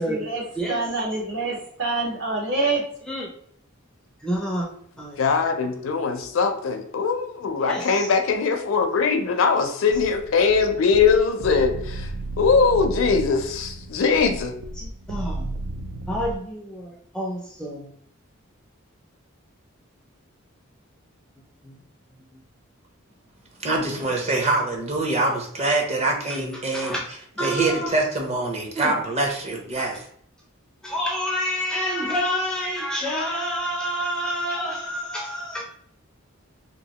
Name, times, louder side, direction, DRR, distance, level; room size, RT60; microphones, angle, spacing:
voice 1, 0.0-0.4 0.7-2.8, right 3 dB, 60° right, -3 dB, 1.2 m, -26 dB
voice 2, 0.5-1.1 3.1-3.3 4.2-4.7 5.0-5.3 6.2-6.3 7.6-8.2 9.6-10.0 14.8-15.5 16.1-17.9 21.6-21.8 26.3-27.0 27.4-27.9 28.8-28.9 29.8-29.9 30.8-35.6, equal, 5° left, -2 dB, 0.4 m, -29 dB
voice 3, 5.2-12.1 12.4-14.5, left 5 dB, 70° left, 6 dB, 0.5 m, -21 dB
sound 1, 9.9-16.3, right 2 dB, 80° right, 0.3 m, -34 dB
voice 4, 23.6-26.9 27.4-30.0, right 2 dB, 30° right, 1 dB, 0.7 m, -24 dB
3.0 x 2.6 x 2.8 m, 0.66 s
head